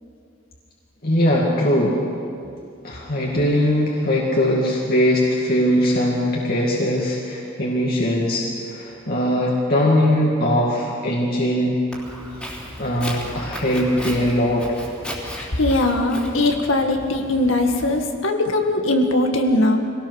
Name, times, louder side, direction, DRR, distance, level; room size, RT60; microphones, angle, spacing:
voice 1, 1.0-2.0 2.8-11.8 12.8-14.8, equal, 50° left, -4 dB, 2.3 m, -20 dB
Walk footsteps, 11.9-18.0, equal, 5° left, 3.4 m, -35 dB
voice 2, 15.3-19.8, left 2 dB, 80° left, 3 dB, 1.9 m, -20 dB
23.0 x 18.0 x 6.5 m, 2.5 s
head